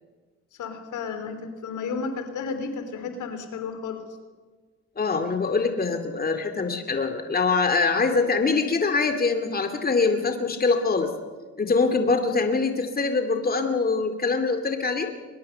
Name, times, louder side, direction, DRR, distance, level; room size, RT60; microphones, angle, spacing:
voice 1, 0.6-4.0, left 5 dB, 80° left, 8 dB, 3.5 m, -32 dB
voice 2, 5.0-11.1 11.6-15.1, left 4 dB, 30° left, 6 dB, 2.3 m, -24 dB
22.5 x 21.0 x 6.8 m, 1.4 s
cardioid pair, 90°, 30 cm